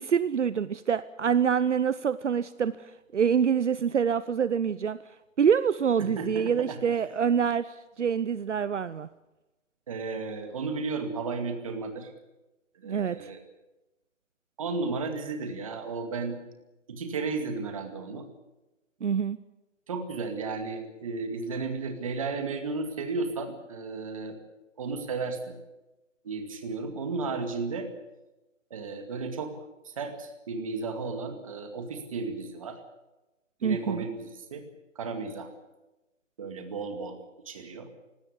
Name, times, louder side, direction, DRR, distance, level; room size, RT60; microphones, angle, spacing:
voice 1, 0.0-5.0 5.4-9.1 12.8-13.2 19.0-19.4 33.6-34.0, right 7 dB, 65° right, 15 dB, 0.8 m, -26 dB
voice 2, 6.0-6.8 9.9-12.1 12.8-13.4 14.6-16.4 16.9-18.2 19.9-24.4 24.8-25.4 26.2-27.9 28.7-32.8 33.6-34.6 35.0-35.5 36.4-37.2 37.5-37.9, right 4 dB, 25° right, 6 dB, 2.3 m, -34 dB
19.0 x 17.0 x 9.9 m, 1.0 s
hypercardioid pair, 175°, 39 cm